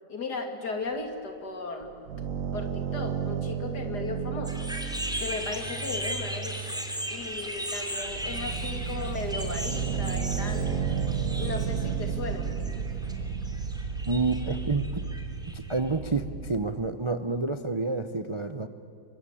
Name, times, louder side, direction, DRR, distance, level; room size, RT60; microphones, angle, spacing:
voice 1, 0.1-1.9 2.5-4.7 5.2-6.6 7.1-10.7 11.4-12.5, left 3 dB, 70° left, 5 dB, 3.5 m, -36 dB
sound 1, 1.8-6.3 7.3-7.4 7.8-16.9, right 6 dB, 55° right, 1.2 m, -32 dB
sound 2, 4.4-15.9, equal, ahead, 3.0 m, -37 dB
voice 2, 14.1-14.9 15.5-18.7, right 3 dB, 25° right, 10 dB, 0.6 m, -29 dB
29.0 x 23.5 x 8.5 m, 2.9 s
omnidirectional pair, 1.8 m